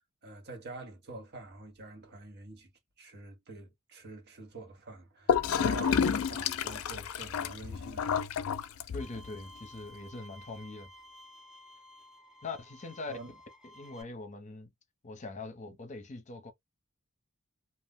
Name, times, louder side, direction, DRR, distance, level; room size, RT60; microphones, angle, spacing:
voice 1, 0.2-2.7 3.0-8.2 8.7-8.9 13.1-13.3, right 3 dB, 50° right, 0.9 m, -46 dB
Gurgling / Toilet flush, 5.3-9.3, left 7 dB, 80° left, 0.4 m, -30 dB
voice 2, 8.9-10.9 12.4-13.1 13.7-14.7 15.0-16.5, left 3 dB, 35° left, 0.7 m, -42 dB
Bowed string instrument, 9.0-14.0, left 1 dB, 5° right, 0.7 m, -53 dB
2.3 x 2.1 x 3.4 m
head